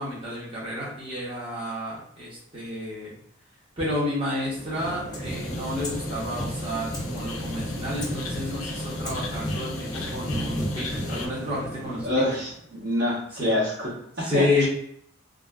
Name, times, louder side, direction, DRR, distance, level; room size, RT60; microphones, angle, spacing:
voice 1, 0.0-3.1 3.8-12.2 13.3-13.6 14.2-14.7, left 1 dB, 25° right, -8 dB, 0.8 m, -30 dB
sound 1, 4.4-12.7, equal, 20° left, 0.5 m, -33 dB
sound 2, 5.3-11.3, left 4 dB, 75° left, 0.4 m, -39 dB
voice 2, 12.0-13.9 14.2-14.7, left 1 dB, 55° right, -5 dB, 0.9 m, -26 dB
2.5 x 2.4 x 2.2 m, 0.66 s
head